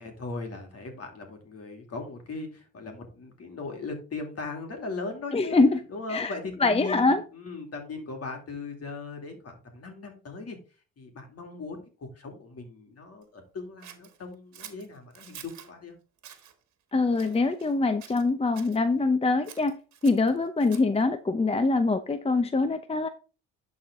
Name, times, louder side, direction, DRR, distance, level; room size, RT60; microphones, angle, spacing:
voice 1, 0.0-5.6 5.9-10.6 11.0-15.9, left 3 dB, 50° left, 4 dB, 2.7 m, -38 dB
voice 2, 5.3-5.8 6.1-6.3 6.6-7.2 16.9-19.7 20.0-23.1, left 3 dB, 20° left, 9 dB, 0.7 m, -24 dB
Scissors, 13.8-15.7 16.2-16.5 17.1-17.8 18.0-18.8 19.4-21.0, right 9 dB, 60° right, 1.5 m, -48 dB
11.5 x 4.3 x 3.7 m, 0.35 s
supercardioid pair, 70°, 31 cm